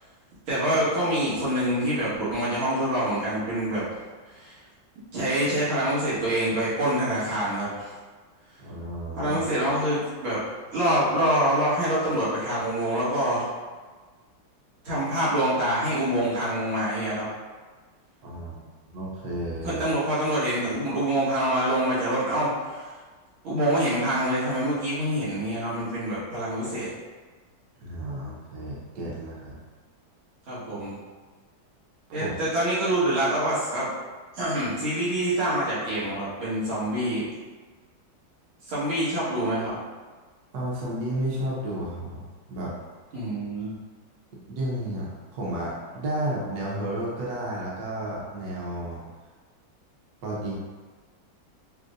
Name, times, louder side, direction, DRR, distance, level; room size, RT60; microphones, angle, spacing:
voice 1, 0.5-3.9 4.3-4.6 5.1-7.9 9.2-10.4 10.7-13.5 14.8-17.2 19.6-22.9 23.4-26.9 30.5-31.0 32.1-33.9 34.3-37.3 38.7-39.7 43.1-43.7, right 1 dB, 90° right, -12 dB, 2.4 m, -26 dB
voice 2, 8.6-9.4 18.2-18.7 18.9-19.8 27.8-29.6 32.1-32.3 40.5-42.7 44.5-49.0 50.2-50.5, right 1 dB, 60° right, -5 dB, 1.2 m, -32 dB
6.2 x 2.2 x 2.5 m, 1.4 s
omnidirectional pair, 2.2 m